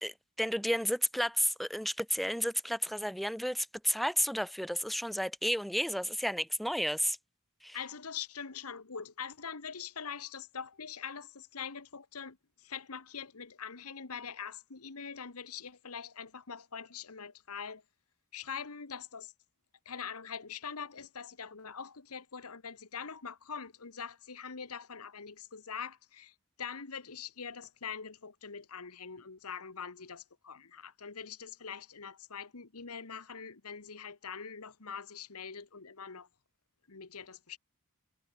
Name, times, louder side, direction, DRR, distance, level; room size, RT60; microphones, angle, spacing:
voice 1, 0.0-7.2 7.6-7.8, equal, ahead, 1.5 m, -32 dB
voice 2, 7.7-17.8 18.3-19.3 19.8-36.3 36.9-37.6, left 6 dB, 80° left, 1.5 m, -43 dB
head